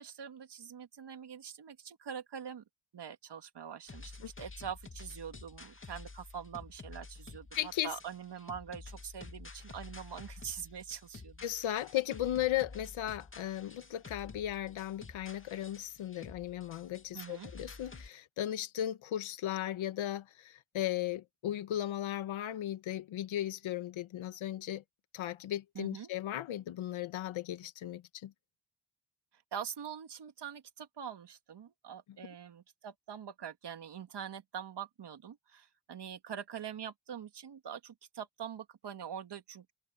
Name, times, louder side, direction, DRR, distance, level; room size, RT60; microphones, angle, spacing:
voice 1, 0.0-2.6 2.9-11.4 17.1-17.5 25.7-26.1 29.5-39.7, right 8 dB, 60° right, 2.4 m, -44 dB
sound 1, 3.9-18.1, left 3 dB, 25° left, 2.7 m, -50 dB
voice 2, 7.5-7.9 11.4-24.8 25.1-28.3, left 12 dB, 80° left, 1.9 m, -36 dB
cardioid pair, 60°, 47 cm